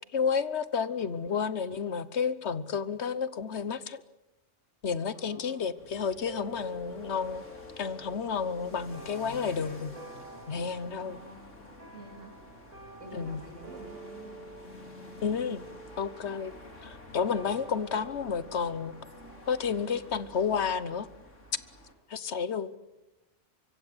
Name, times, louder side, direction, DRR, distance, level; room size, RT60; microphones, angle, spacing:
voice 1, 0.1-4.0 4.8-7.4 7.8-9.9 10.5-11.2 13.1-13.4 15.2-15.7 16.0-16.5 16.8-18.9 19.5-21.1 22.1-22.7, left 6 dB, 65° left, 15 dB, 1.3 m, -31 dB
voice 2, 0.9-1.9 5.1-5.7 11.0-11.7 11.9-12.4 13.0-14.4 17.7-18.1, right 1 dB, 90° right, 4 dB, 4.0 m, -50 dB
sound 1, 5.8-21.9, left 2 dB, 90° left, 4.0 m, -50 dB
sound 2, 6.3-21.0, right 2 dB, 30° right, 5.3 m, -50 dB
24.5 x 24.0 x 7.9 m, 1.0 s
omnidirectional pair, 1.2 m